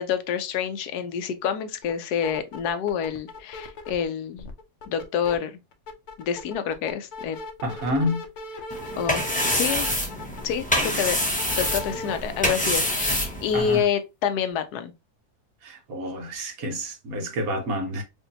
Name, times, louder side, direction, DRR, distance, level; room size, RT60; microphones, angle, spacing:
voice 1, 0.0-4.5 4.9-5.6 6.2-7.4 9.0-9.2 9.5-9.9 10.4-11.2 11.6-14.9, left 8 dB, 85° left, 1.2 m, -27 dB
sound 1, 1.8-1.9 2.2-4.0 4.4-5.3 5.7-12.2, left 3 dB, 60° left, 0.8 m, -38 dB
voice 2, 7.6-8.2 13.5-13.8 15.6-18.0, equal, 70° right, 1.4 m, -28 dB
sound 2, 8.7-13.8, equal, 5° left, 0.6 m, -26 dB
4.9 x 2.6 x 2.7 m
omnidirectional pair, 1.6 m